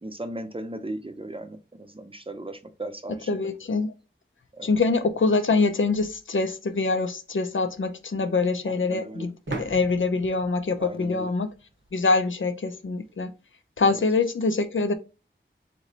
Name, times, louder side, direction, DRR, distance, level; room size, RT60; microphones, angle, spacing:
voice 1, 0.0-3.5 4.5-4.7 8.6-9.3 10.8-11.3 13.8-14.2, right 1 dB, 25° right, 0.5 m, -37 dB
voice 2, 3.3-3.9 4.6-9.3 9.6-11.5 11.9-13.3 13.8-14.9, left 3 dB, 75° left, 0.5 m, -24 dB
sound 1, 9.5-12.1, right 2 dB, 70° right, 0.8 m, -39 dB
3.0 x 3.0 x 3.9 m
wide cardioid pair, 45°, 20 cm